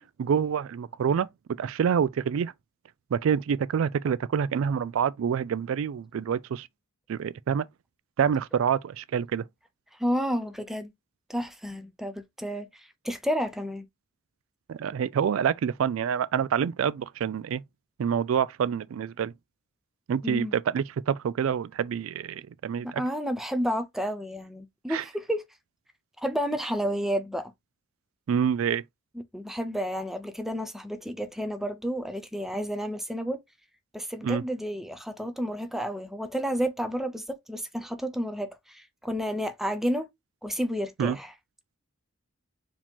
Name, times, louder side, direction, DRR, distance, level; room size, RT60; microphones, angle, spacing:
voice 1, 0.2-1.3 1.6-2.5 3.1-6.7 7.1-7.7 8.2-9.4 14.7-17.6 18.0-19.3 20.1-23.0 24.9-25.0 28.3-28.8 34.2-34.4 41.0-41.2, right 7 dB, 75° right, 0.3 m, -27 dB
voice 2, 10.0-10.9 11.3-12.7 13.0-13.8 20.2-20.5 22.8-25.4 26.2-27.5 29.3-33.4 33.9-40.1 40.4-41.3, equal, ahead, 0.5 m, -31 dB
4.8 x 2.9 x 3.5 m
head